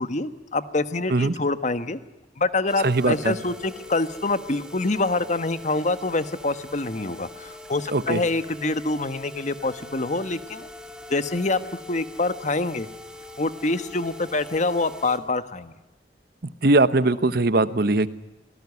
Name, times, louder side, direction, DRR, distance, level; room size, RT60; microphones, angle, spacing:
voice 1, 0.0-2.0 2.4-10.7 11.1-12.9 13.4-15.7, left 2 dB, 45° left, 12 dB, 1.3 m, -26 dB
sound 1, 2.7-15.2, left 2 dB, 5° right, 2.4 m, -43 dB
voice 2, 2.8-3.3 7.9-8.2 16.6-18.1, right 2 dB, 60° right, 14 dB, 1.1 m, -20 dB
25.5 x 18.5 x 9.7 m, 1.0 s
head